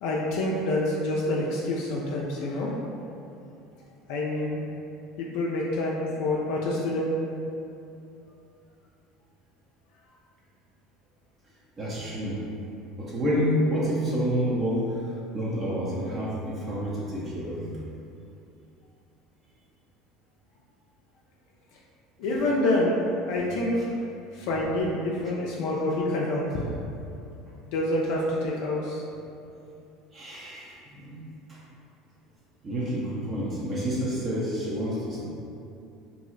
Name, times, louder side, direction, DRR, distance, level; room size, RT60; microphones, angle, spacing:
voice 1, 0.0-2.7 4.1-4.6 5.2-7.1 22.2-23.0 23.3-23.7 24.3-26.7 27.7-29.0, left 1 dB, 70° left, -4 dB, 0.4 m, -27 dB
voice 2, 11.8-12.4 13.0-17.6 30.1-31.2 31.5-31.6 32.6-35.2, equal, 35° right, -7 dB, 0.6 m, -29 dB
2.6 x 2.0 x 3.8 m, 2.7 s
hypercardioid pair, 80°, 0 cm